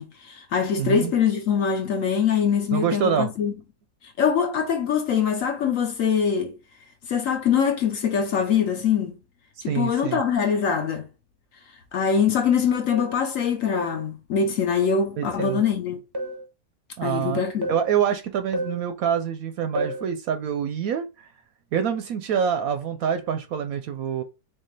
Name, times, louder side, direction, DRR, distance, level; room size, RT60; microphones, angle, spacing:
voice 1, 0.0-3.5 4.2-6.6 7.1-9.2 9.6-11.1 11.9-16.0 17.0-17.7, left 7 dB, 60° left, 1.0 m, -23 dB
voice 2, 0.8-1.1 2.7-3.3 9.7-10.2 15.2-15.6 17.0-17.4 17.7-21.3 21.7-24.2, right 8 dB, 70° right, 0.9 m, -26 dB
sound 1, 12.9-13.2 13.7-14.0 15.4-15.7 16.1-16.5 17.6-17.9 18.5-18.8 19.7-20.1 22.3-22.6 23.1-23.3, equal, 30° right, 0.4 m, -31 dB
4.4 x 3.4 x 3.2 m
omnidirectional pair, 1.8 m